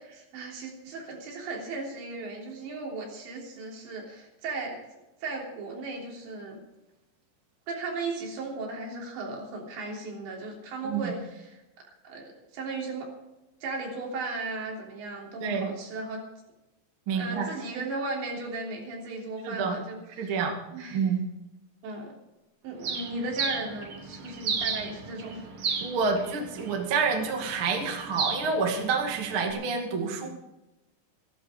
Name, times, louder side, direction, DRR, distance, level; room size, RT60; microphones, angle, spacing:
voice 1, 0.0-4.8 5.2-6.6 7.7-11.6 12.0-13.1 13.6-16.2 17.1-20.4 20.7-21.1 21.8-22.1 22.6-25.5, right 3 dB, 70° right, -1 dB, 5.6 m, -36 dB
voice 2, 17.1-17.5 19.4-19.8 20.2-20.5 20.9-21.2 25.8-30.3, right 5 dB, 40° right, 1 dB, 2.1 m, -28 dB
Bird, 22.8-29.5, right 5 dB, 90° right, 1.3 m, -35 dB
15.5 x 13.0 x 5.1 m, 0.96 s
omnidirectional pair, 5.3 m